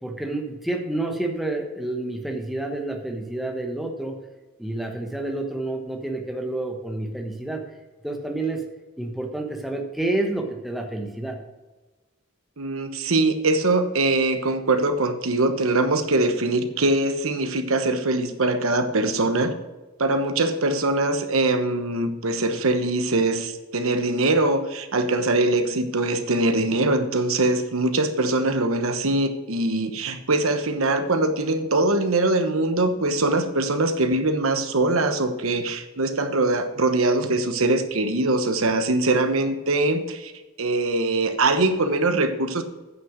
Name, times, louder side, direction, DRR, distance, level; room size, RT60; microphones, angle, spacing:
voice 1, 0.0-4.1 4.6-7.6 8.0-8.6 9.0-11.4, right 2 dB, ahead, 2 dB, 1.2 m, -29 dB
voice 2, 12.6-19.5 20.0-40.3 40.6-42.6, right 2 dB, 75° right, 8 dB, 1.1 m, -22 dB
9.2 x 6.5 x 6.1 m, 1.2 s
head